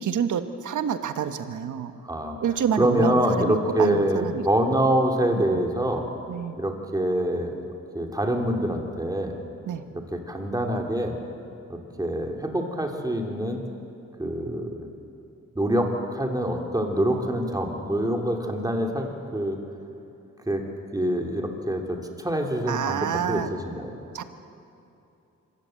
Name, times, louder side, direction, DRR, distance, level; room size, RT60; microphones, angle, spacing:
voice 1, 0.0-1.9 2.4-3.5 3.8-4.4 6.3-6.6 9.7-9.8 22.7-23.5 24.1-24.2, right 8 dB, 75° right, 9 dB, 1.3 m, -27 dB
voice 2, 2.0-2.4 2.8-6.1 6.6-7.5 7.9-9.4 9.9-11.2 11.7-13.6 14.2-14.9 15.5-19.6 20.5-20.6 20.9-23.9, right 1 dB, 10° right, 2 dB, 3.0 m, -25 dB
25.0 x 16.0 x 7.8 m, 2.7 s
cardioid pair, 80°, 31 cm